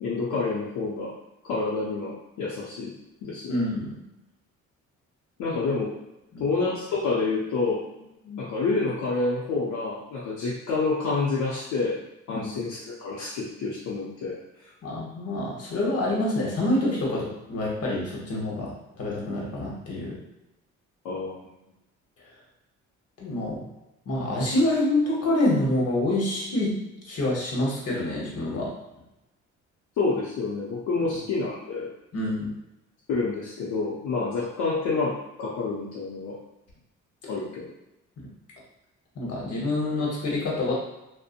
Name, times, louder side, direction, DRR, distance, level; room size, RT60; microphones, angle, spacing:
voice 1, 0.0-1.1 1.4-2.9 3.2-3.6 5.4-5.9 6.4-12.0 12.3-14.4 21.0-21.4 30.0-31.9 33.1-36.4 37.3-37.7, left 3 dB, 75° left, -6 dB, 0.6 m, -28 dB
voice 2, 3.5-3.9 5.5-5.6 6.3-6.4 12.3-12.5 14.8-20.2 23.2-23.6 24.1-26.8 27.1-28.7 32.1-32.5 38.2-38.3 39.1-40.7, left 1 dB, 55° left, -3 dB, 1.0 m, -27 dB
2.6 x 2.1 x 2.5 m, 0.94 s
cardioid pair, 90°, 30 cm